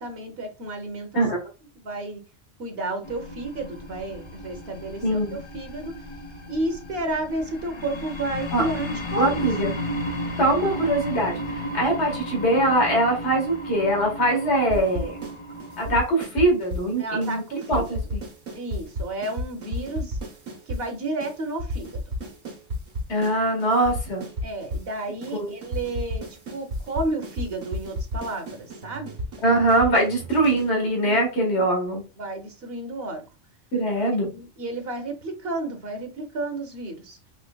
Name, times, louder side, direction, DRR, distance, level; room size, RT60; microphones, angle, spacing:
voice 1, 0.0-1.2 1.8-2.2 2.6-6.0 6.5-9.3 17.0-17.8 18.5-20.2 20.7-22.0 24.4-29.1 31.0-31.2 32.2-33.2 34.0-37.2, right 2 dB, 60° right, 1.1 m, -32 dB
voice 2, 1.1-1.5 5.0-5.4 8.5-8.6 9.2-9.7 10.4-15.2 15.8-17.4 17.7-18.2 23.1-24.2 25.3-25.5 29.4-32.0 33.7-34.3, right 1 dB, 65° left, 1.8 m, -22 dB
sound 1, 3.0-16.0, equal, 35° left, 0.5 m, -34 dB
sound 2, 14.7-15.3 15.6-16.9 17.2-17.4 17.6-20.8 21.2-21.3 21.6-23.3 23.6-24.9 25.2-25.3 25.6-30.7, equal, 85° right, 1.5 m, -32 dB
5.1 x 3.1 x 2.2 m
omnidirectional pair, 1.2 m